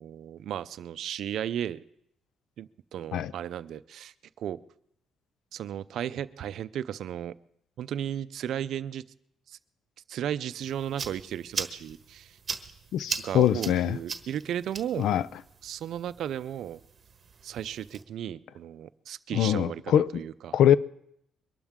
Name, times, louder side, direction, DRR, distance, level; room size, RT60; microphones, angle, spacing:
voice 1, 0.0-1.8 2.6-4.6 5.5-7.3 7.8-9.0 9.5-9.6 10.1-12.4 13.2-15.1 15.6-16.8 17.4-20.6, right 10 dB, 75° right, 0.5 m, -35 dB
sound 1, 10.6-18.0, right 5 dB, 40° right, 1.4 m, -40 dB
voice 2, 12.9-14.0 15.0-15.3 19.3-20.1 20.5-20.8, left 10 dB, 80° left, 0.5 m, -23 dB
23.0 x 12.0 x 3.7 m
cardioid pair, 90°, 0 cm